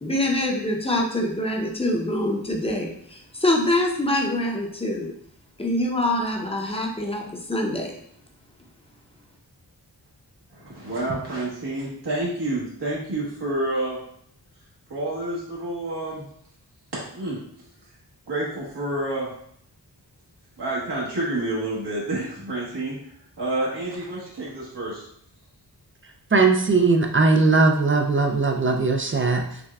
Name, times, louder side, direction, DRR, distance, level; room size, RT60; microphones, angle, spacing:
voice 1, 0.0-5.1 5.6-7.9, left 1 dB, 15° left, 1 dB, 0.7 m, -25 dB
voice 2, 10.5-14.0 14.9-16.3 17.1-17.4 18.3-19.3 20.6-22.9 23.4-25.1, right 1 dB, 80° right, -7 dB, 1.2 m, -28 dB
voice 3, 26.3-29.6, right 3 dB, 30° right, 4 dB, 0.4 m, -19 dB
5.8 x 2.2 x 2.3 m, 0.67 s
wide cardioid pair, 65°, 41 cm